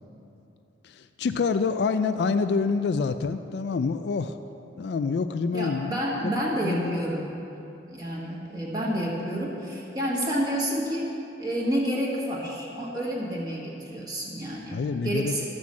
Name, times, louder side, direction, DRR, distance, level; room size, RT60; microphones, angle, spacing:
voice 1, 0.8-4.3 4.8-5.9 6.2-6.3 6.6-7.0 14.7-15.5, left 4 dB, 60° left, 10 dB, 0.3 m, -27 dB
voice 2, 5.5-7.4 7.9-11.1 11.4-15.5, equal, 20° right, -4 dB, 1.5 m, -29 dB
12.0 x 6.1 x 7.3 m, 2.9 s
head